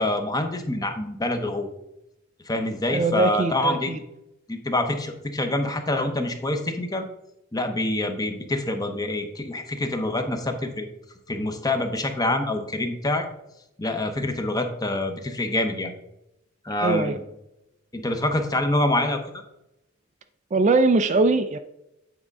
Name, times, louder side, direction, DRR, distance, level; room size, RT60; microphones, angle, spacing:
voice 1, 0.0-1.7 2.5-3.9 4.5-7.1 7.5-10.9 11.3-13.2 13.8-15.9 16.6-17.2 17.9-19.2, left 1 dB, 20° left, 6 dB, 0.8 m, -26 dB
voice 2, 2.9-4.0 16.8-17.2 20.5-21.6, right 3 dB, 35° right, 9 dB, 0.4 m, -21 dB
8.7 x 3.6 x 5.3 m, 0.87 s
head